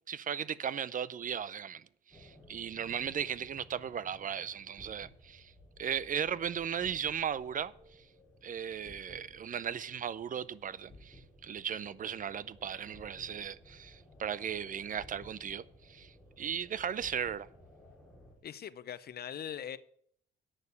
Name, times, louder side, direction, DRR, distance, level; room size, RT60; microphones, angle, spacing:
voice 1, 0.1-5.5 5.8-7.7 8.4-17.5, right 8 dB, 45° right, 0.5 m, -37 dB
sound 1, 2.1-18.4, left 1 dB, ahead, 3.6 m, -57 dB
voice 2, 18.4-19.8, left 9 dB, 55° left, 0.7 m, -41 dB
8.8 x 6.6 x 8.2 m
cardioid pair, 90°, 20 cm